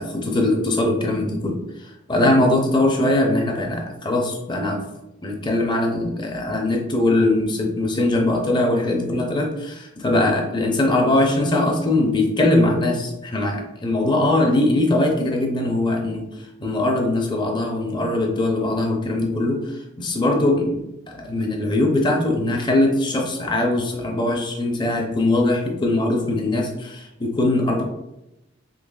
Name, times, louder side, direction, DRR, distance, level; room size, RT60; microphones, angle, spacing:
voice 1, 0.0-4.8 5.2-16.3 16.6-27.8, left 2 dB, 25° left, 2 dB, 0.5 m, -21 dB
3.8 x 3.2 x 2.3 m, 0.90 s
head